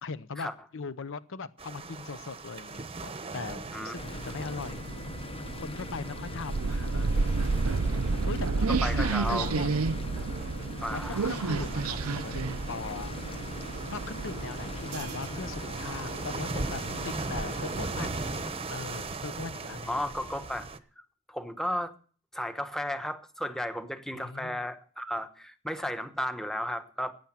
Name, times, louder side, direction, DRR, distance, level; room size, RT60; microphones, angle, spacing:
voice 1, 0.0-4.8 5.6-7.2 8.3-9.7 10.9-13.4 13.9-18.4 18.7-19.9 24.1-24.6, left 4 dB, 65° left, 0.7 m, -40 dB
sound 1, 1.6-20.8, right 3 dB, 25° right, 0.9 m, -40 dB
sound 2, 4.0-18.5, left 2 dB, 25° left, 0.7 m, -41 dB
sound 3, 4.0-17.9, right 4 dB, 80° right, 0.6 m, -32 dB
voice 2, 8.7-9.5 10.8-11.6 19.9-20.7 21.3-21.9 22.3-27.1, equal, ahead, 1.1 m, -34 dB
15.0 x 8.9 x 7.3 m
head